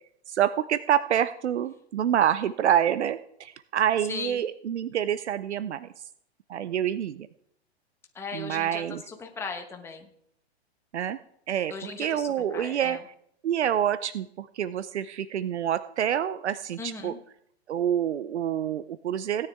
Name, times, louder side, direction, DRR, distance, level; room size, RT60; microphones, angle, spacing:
voice 1, 0.3-5.9 6.5-7.3 8.3-9.0 10.9-11.2 11.5-11.7 12.0-13.0 13.4-17.1 17.7-19.5, right 10 dB, 85° right, 15 dB, 0.6 m, -27 dB
voice 2, 4.1-4.4 8.1-10.1 11.7-13.0 16.8-17.2, left 4 dB, 10° left, 2 dB, 1.1 m, -38 dB
17.0 x 9.7 x 3.5 m, 0.70 s
hypercardioid pair, 130°, 33 cm